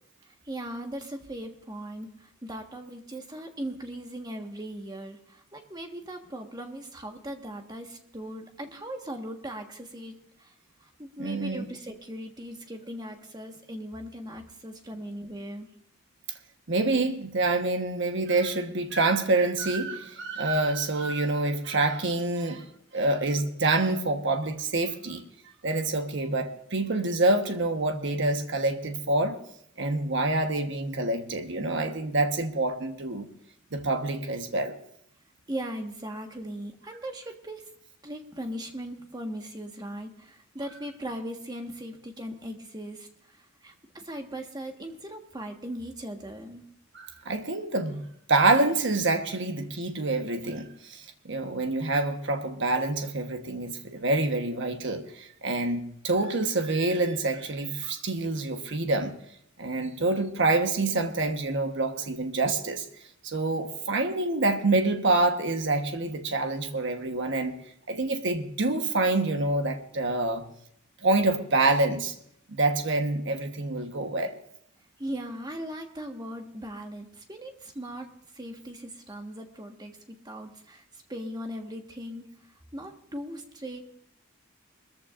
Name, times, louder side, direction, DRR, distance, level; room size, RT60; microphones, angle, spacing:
voice 1, 0.4-10.5 10.8-15.7 35.5-37.7 38.0-43.4 43.6-46.7 75.0-78.1 78.3-82.2 82.7-83.9, right 1 dB, 20° right, 1.4 m, -39 dB
voice 2, 11.2-11.7 16.7-22.7 22.9-25.2 25.6-29.4 29.8-33.3 33.7-34.8 46.9-59.1 59.6-62.8 63.2-67.5 67.9-70.4 71.0-72.1 72.5-74.4, right 2 dB, 60° right, 1.2 m, -27 dB
22.0 x 14.0 x 2.5 m
head